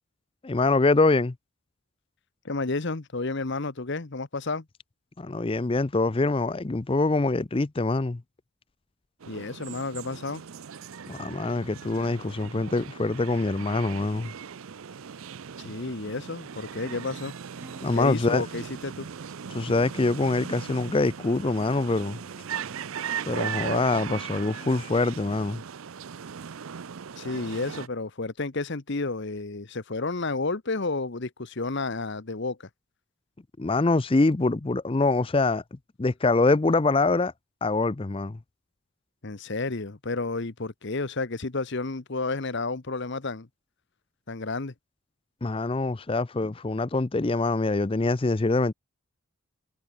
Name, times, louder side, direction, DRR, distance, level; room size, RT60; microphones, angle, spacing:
voice 1, 0.4-1.3 5.2-8.2 11.1-14.3 17.8-18.5 19.5-22.2 23.3-25.6 33.6-37.3 37.6-38.4 45.4-48.7, left 3 dB, 25° left, 0.5 m, -24 dB
voice 2, 2.4-4.6 9.3-10.4 15.6-17.3 18.0-19.1 27.2-32.6 39.2-43.5 44.3-44.7, left 3 dB, 50° left, 1.0 m, -31 dB
sound 1, 9.2-27.9, right 7 dB, 65° right, 0.5 m, -38 dB
Acoustic guitar, 17.5-25.5, equal, 10° right, 3.7 m, -55 dB
head